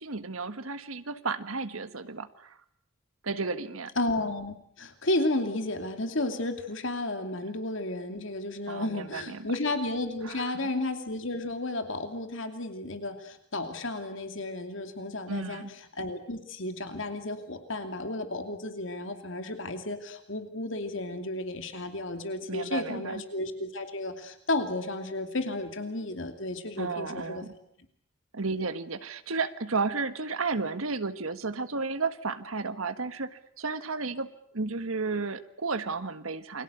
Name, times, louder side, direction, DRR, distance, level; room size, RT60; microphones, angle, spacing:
voice 1, 0.0-2.6 3.2-3.9 8.7-9.5 10.2-10.7 15.3-15.7 22.5-23.2 26.8-27.5 28.3-36.6, right 4 dB, 90° right, 11 dB, 1.5 m, -33 dB
voice 2, 4.0-27.4, left 2 dB, 70° left, 7 dB, 2.7 m, -33 dB
29.0 x 22.5 x 8.1 m, 0.68 s
head